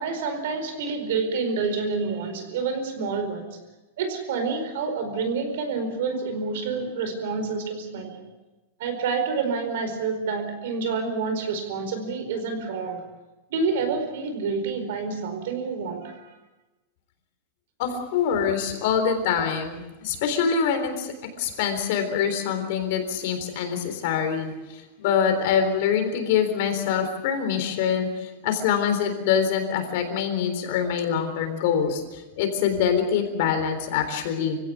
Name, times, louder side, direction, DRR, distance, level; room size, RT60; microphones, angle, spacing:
voice 1, 0.0-3.6 4.0-8.2 8.8-13.0 13.5-16.3, right 4 dB, 60° right, 8 dB, 4.7 m, -28 dB
voice 2, 17.8-34.6, left 7 dB, 50° left, 6 dB, 3.8 m, -25 dB
25.5 x 16.5 x 8.3 m, 1.1 s
supercardioid pair, 175°, 0 cm